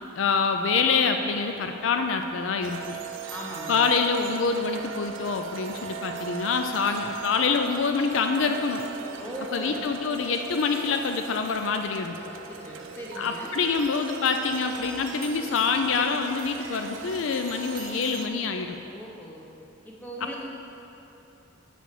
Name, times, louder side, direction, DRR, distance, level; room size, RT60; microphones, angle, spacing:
voice 1, 0.2-3.0 3.7-8.8 9.5-12.2 13.2-18.8, left 5 dB, 70° left, 5 dB, 0.4 m, -26 dB
sound 1, 2.6-18.3, right 7 dB, 70° right, 0.5 m, -39 dB
voice 2, 3.3-3.9 9.2-9.9 12.3-13.6 18.9-19.5 19.8-20.4, equal, 10° left, -4 dB, 1.1 m, -39 dB
10.0 x 3.4 x 6.6 m, 3.0 s
head